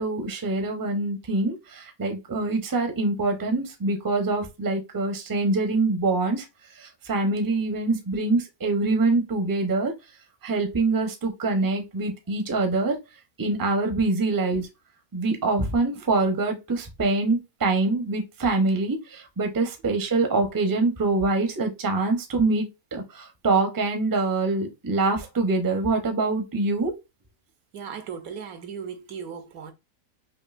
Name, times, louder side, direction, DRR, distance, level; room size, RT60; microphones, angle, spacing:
voice 1, 0.0-6.5 6.7-9.9 10.4-13.0 13.4-14.7 15.1-26.9, right 3 dB, 20° right, 0.5 m, -25 dB
voice 2, 27.7-29.7, right 7 dB, 75° right, 1.2 m, -37 dB
5.1 x 2.7 x 2.4 m
omnidirectional pair, 1.6 m